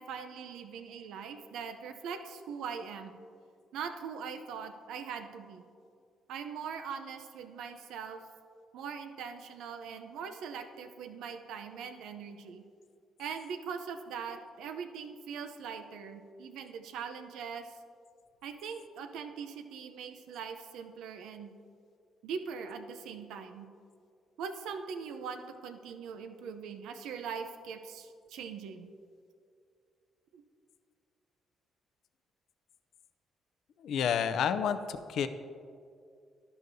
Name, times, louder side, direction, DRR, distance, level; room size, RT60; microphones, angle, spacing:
voice 1, 0.0-3.2 3.7-5.6 6.3-8.2 8.7-12.6 13.2-17.8 18.4-21.5 22.2-23.7 24.4-28.9 30.3-30.4, right 6 dB, 85° right, 7 dB, 0.6 m, -41 dB
voice 2, 33.8-35.3, left 8 dB, 75° left, 11 dB, 0.5 m, -30 dB
11.5 x 11.0 x 2.7 m, 2.3 s
cardioid pair, 90°, 0 cm